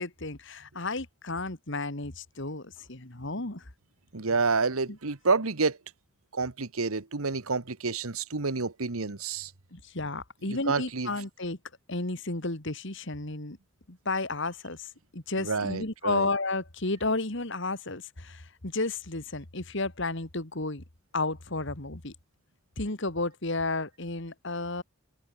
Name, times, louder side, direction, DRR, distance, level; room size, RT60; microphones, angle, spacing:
voice 1, 0.0-3.6 9.7-11.6 11.9-13.6 13.9-20.8 21.1-22.1 22.8-24.8, left 2 dB, 55° left, 2.5 m, -32 dB
voice 2, 4.1-5.8 6.3-9.5 10.4-11.1 15.4-16.3, right 4 dB, 85° right, 1.4 m, -29 dB
head